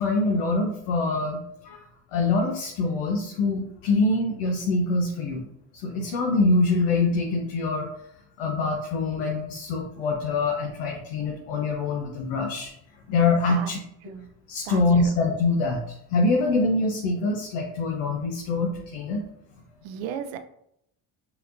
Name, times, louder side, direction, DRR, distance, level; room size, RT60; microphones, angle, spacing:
voice 1, 0.0-1.8 2.1-5.5 5.8-7.9 8.4-12.7 13.1-13.8 14.5-19.2, left 3 dB, 85° left, 0 dB, 0.9 m, -24 dB
voice 2, 14.7-15.2 19.8-20.4, right 8 dB, 75° right, 9 dB, 0.6 m, -35 dB
5.8 x 2.9 x 2.6 m, 0.76 s
supercardioid pair, 70°, 47 cm